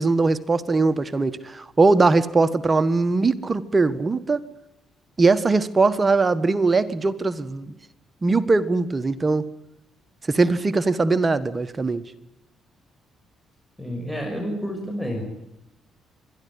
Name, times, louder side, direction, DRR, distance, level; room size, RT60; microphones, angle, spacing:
voice 1, 0.0-4.4 5.2-7.7 8.2-9.5 10.3-12.0, right 3 dB, 25° right, 11 dB, 1.4 m, -20 dB
voice 2, 13.8-15.2, equal, 5° left, 1 dB, 6.0 m, -29 dB
26.0 x 11.5 x 9.7 m, 0.87 s
cardioid pair, 90°, 0 cm